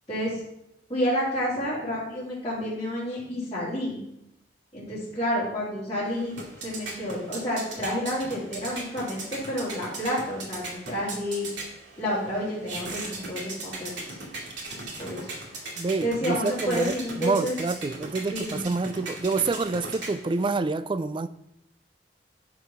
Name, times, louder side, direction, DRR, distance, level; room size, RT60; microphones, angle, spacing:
voice 1, 0.9-4.0 4.7-11.5 12.0-14.2 14.8-15.3 16.0-17.6 18.3-18.7, equal, 25° left, 3.5 m, -30 dB
sound 1, 6.0-20.5, right 2 dB, 85° right, 2.3 m, -38 dB
voice 2, 15.8-21.3, right 3 dB, 30° right, 0.3 m, -27 dB
10.0 x 4.8 x 5.7 m
head